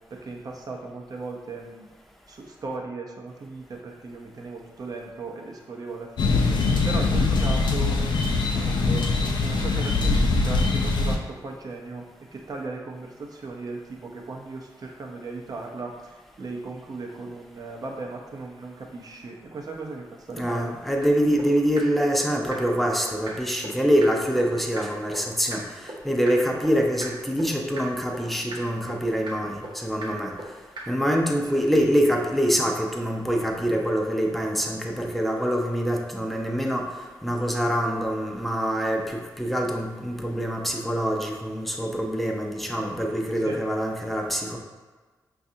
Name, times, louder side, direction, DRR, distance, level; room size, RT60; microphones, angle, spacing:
voice 1, 0.1-1.9 2.3-12.0 12.3-20.7 31.5-31.6 43.4-43.6, right 3 dB, 50° right, 0 dB, 0.6 m, -37 dB
sound 1, 6.2-11.2, left 3 dB, 70° left, 0.4 m, -22 dB
voice 2, 20.3-30.3 30.9-36.9 37.2-44.6, equal, ahead, 1 dB, 0.5 m, -25 dB
sound 2, 21.0-21.1 21.4-21.5 21.8-21.9 22.1-22.2 22.5-22.6 22.9-23.0 23.3-23.4 23.6-23.7 24.0-24.1 24.4-24.5 24.8-24.9 25.1-25.2 25.5-25.6 25.9-26.0 26.3-26.4 26.6-26.7 27.0-27.1 27.4-27.5 27.8-27.9 28.1-28.2 28.5-28.6 28.9-29.0 29.3-29.4 29.6-29.7 30.0-30.1 30.4-30.5 30.8-30.9, right 2 dB, 75° right, 0.9 m, -36 dB
5.2 x 2.4 x 2.7 m, 1.4 s
wide cardioid pair, 95°, 8 cm